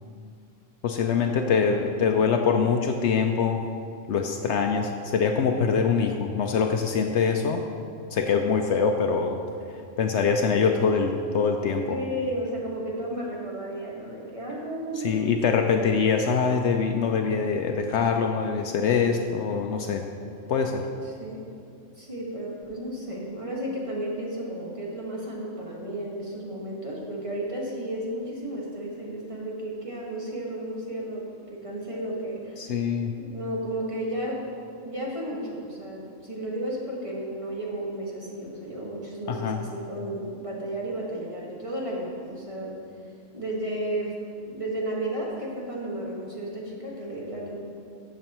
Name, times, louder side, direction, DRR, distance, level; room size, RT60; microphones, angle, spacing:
voice 1, 0.8-3.6 4.1-7.6 8.1-9.4 10.0-12.0 15.0-20.1 20.5-20.9 32.6-33.1 39.3-39.6, left 5 dB, 70° left, 4 dB, 0.8 m, -24 dB
voice 2, 11.9-15.3 21.0-21.4 22.0-32.8 33.2-34.5 34.8-42.8 43.3-44.2 44.5-47.6, right 1 dB, 25° right, -4 dB, 1.6 m, -33 dB
14.0 x 6.9 x 3.0 m, 2.4 s
omnidirectional pair, 1.3 m